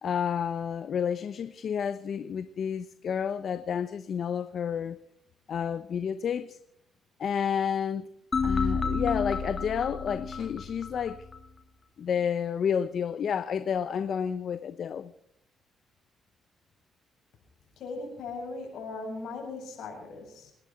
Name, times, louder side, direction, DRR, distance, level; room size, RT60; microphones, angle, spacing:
voice 1, 0.0-5.0 5.5-6.6 7.2-8.1 8.4-11.2 12.0-15.1, left 7 dB, 60° left, 0.9 m, -30 dB
sound 1, 8.3-11.4, left 4 dB, 35° left, 2.3 m, -30 dB
voice 2, 17.8-20.5, left 3 dB, 75° left, 7.8 m, -38 dB
28.0 x 11.0 x 4.5 m
cardioid pair, 90°, 0 cm